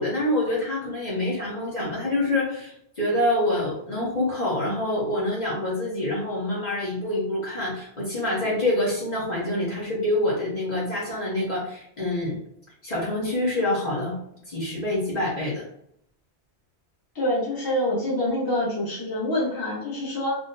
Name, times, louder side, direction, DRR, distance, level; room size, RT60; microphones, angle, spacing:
voice 1, 0.0-12.4 12.8-14.2 14.5-15.6, left 1 dB, 40° left, -6 dB, 1.1 m, -26 dB
voice 2, 17.1-20.3, left 1 dB, 20° left, -6 dB, 1.0 m, -26 dB
3.7 x 2.3 x 2.6 m, 0.71 s
omnidirectional pair, 1.1 m